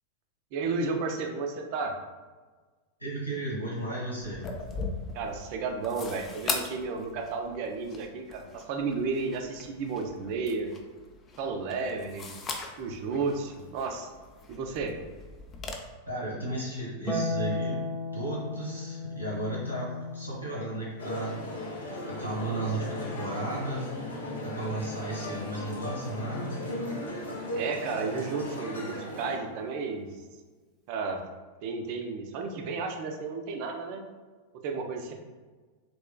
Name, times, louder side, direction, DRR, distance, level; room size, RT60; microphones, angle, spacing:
voice 1, 0.5-2.0 5.1-10.7 11.4-12.3 12.8-14.1 14.5-15.0 27.5-30.1 30.9-31.2 31.6-34.0 34.6-35.1, right 4 dB, 45° right, 3 dB, 0.4 m, -32 dB
voice 2, 3.0-4.4 16.1-17.8 18.1-19.9 20.1-21.3 21.8-24.0 24.4-26.6 35.0-35.1, right 1 dB, 85° left, -6 dB, 1.1 m, -34 dB
sound 1, 4.2-15.7, left 4 dB, 25° left, 0.4 m, -40 dB
Harp, 17.1-23.6 25.2-26.2, left 2 dB, 15° right, 0.8 m, -37 dB
sound 2, 21.0-29.4, left 1 dB, 65° left, 0.6 m, -36 dB
3.3 x 3.0 x 2.2 m, 1.4 s
figure-of-eight pair, 90°, 0 cm